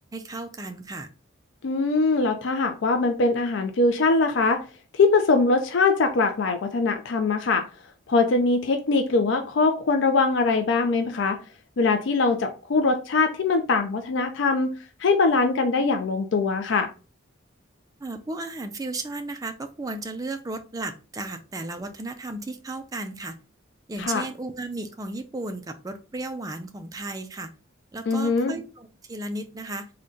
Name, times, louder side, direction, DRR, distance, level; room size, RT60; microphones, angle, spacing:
voice 1, 0.1-1.1 18.0-23.4 23.9-27.5 27.9-29.9, right 2 dB, 20° right, 7 dB, 0.3 m, -34 dB
voice 2, 1.6-4.6 4.9-7.6 8.1-11.4 11.8-14.7 15.0-16.9 24.0-24.2 28.1-28.5, left 3 dB, 65° left, 7 dB, 0.4 m, -22 dB
3.8 x 2.2 x 3.7 m, 0.34 s
head